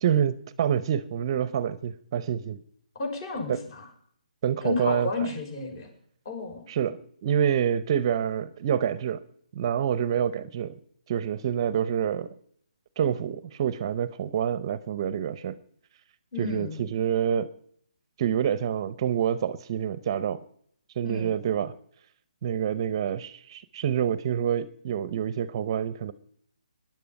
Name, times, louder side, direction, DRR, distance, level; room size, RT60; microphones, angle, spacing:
voice 1, 0.0-2.6 3.5-3.6 4.4-5.1 6.7-9.2 9.5-10.8 11.1-12.3 13.0-15.6 16.4-17.5 18.2-20.4 21.0-21.7 22.4-26.1, right 9 dB, 35° right, 16 dB, 0.7 m, -27 dB
voice 2, 3.0-3.9 4.6-5.9 6.3-6.6 16.3-16.8 21.0-21.3, left 3 dB, 35° left, 4 dB, 5.6 m, -32 dB
19.5 x 11.0 x 5.3 m, 0.66 s
hypercardioid pair, 155°, 4 cm